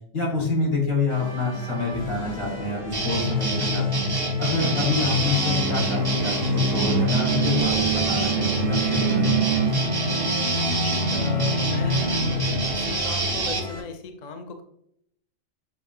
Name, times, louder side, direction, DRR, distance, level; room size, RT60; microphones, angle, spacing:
voice 1, 0.1-4.0 4.4-9.4, left 3 dB, 80° left, -3 dB, 1.9 m, -26 dB
sound 1, 1.1-13.8, left 2 dB, 45° left, 0.9 m, -37 dB
sound 2, 2.9-13.6, right 1 dB, 30° right, 0.5 m, -26 dB
sound 3, 4.6-12.9, right 5 dB, 85° right, 1.0 m, -28 dB
voice 2, 10.7-12.1 12.6-14.6, left 4 dB, 60° left, 6 dB, 0.4 m, -37 dB
6.8 x 2.6 x 2.5 m, 0.72 s
omnidirectional pair, 1.3 m